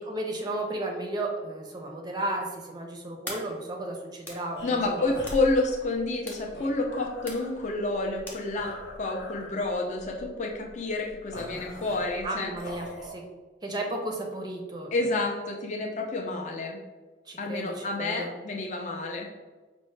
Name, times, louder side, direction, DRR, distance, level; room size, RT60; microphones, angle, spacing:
voice 1, 0.0-5.1 12.2-13.2 13.6-15.1 17.3-18.3, right 1 dB, 25° right, 1 dB, 0.5 m, -34 dB
sound 1, 3.3-9.0, left 1 dB, 10° left, 0.8 m, -46 dB
sound 2, 4.6-13.1, equal, 90° left, 0.9 m, -43 dB
voice 2, 4.6-12.5 12.8-13.0 14.9-16.8 17.4-19.3, left 2 dB, 40° left, 0 dB, 0.4 m, -29 dB
5.2 x 2.1 x 3.2 m, 1.3 s
head